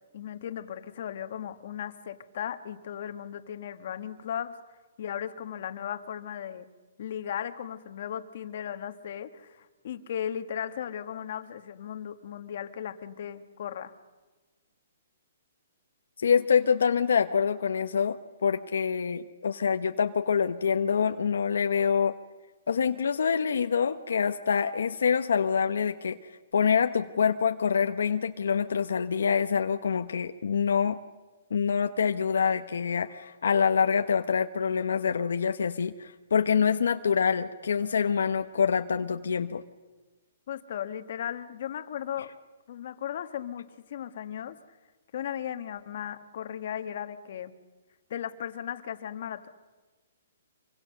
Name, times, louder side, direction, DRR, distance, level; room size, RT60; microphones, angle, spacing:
voice 1, 0.1-4.6 5.0-6.7 7.0-13.9 40.5-42.3 42.7-44.6 45.1-47.5 48.1-49.5, left 9 dB, 50° left, 9 dB, 1.6 m, -36 dB
voice 2, 16.2-18.2 18.4-22.1 22.7-26.2 26.5-31.0 31.5-39.6, left 6 dB, 80° left, 7 dB, 1.0 m, -26 dB
26.0 x 24.5 x 6.6 m, 1.3 s
hypercardioid pair, 160°, 0 cm